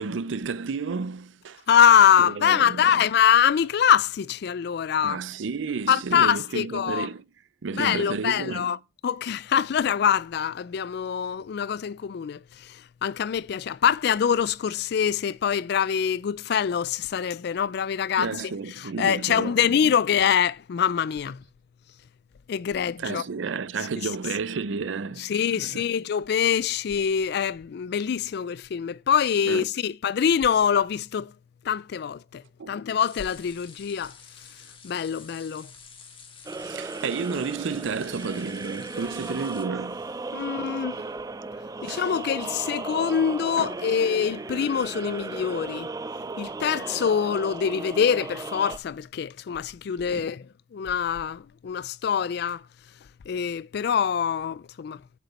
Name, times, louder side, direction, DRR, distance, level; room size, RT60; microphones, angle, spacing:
voice 1, 0.0-1.6 2.2-3.0 5.0-7.2 7.6-8.7 18.2-19.5 23.0-25.8 29.5-29.7 32.6-32.8 36.6-40.1 40.4-40.5 41.9-42.0 43.6-43.8 50.1-50.3, right 5 dB, 80° right, 0.5 m, -32 dB
voice 2, 1.7-5.2 5.9-7.1 7.7-8.8 9.0-18.3 18.8-21.4 22.5-23.2 25.2-31.3 31.6-34.1 34.8-35.7 40.3-41.1 41.8-45.9 46.4-52.6 53.3-55.0, left 8 dB, 60° left, 0.3 m, -24 dB
sound 1, 33.0-39.6, left 6 dB, 30° left, 1.6 m, -49 dB
sound 2, 36.5-48.8, right 3 dB, 20° right, 0.4 m, -36 dB
7.5 x 6.8 x 4.1 m
head